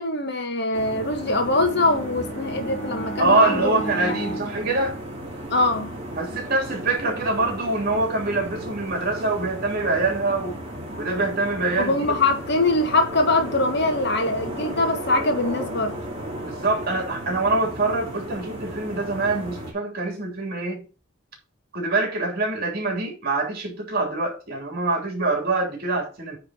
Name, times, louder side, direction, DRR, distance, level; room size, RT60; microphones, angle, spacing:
voice 1, 0.0-4.2 5.5-5.9 11.8-16.0, left 2 dB, 55° left, 1.6 m, -23 dB
sound 1, 0.7-19.7, right 1 dB, 30° right, 3.0 m, -35 dB
Bowed string instrument, 1.0-5.6, right 1 dB, 35° left, 1.4 m, -35 dB
voice 2, 3.2-5.0 6.1-10.6 11.0-12.2 16.4-20.9 21.7-26.4, right 3 dB, 50° right, 3.1 m, -24 dB
9.3 x 3.9 x 5.6 m
head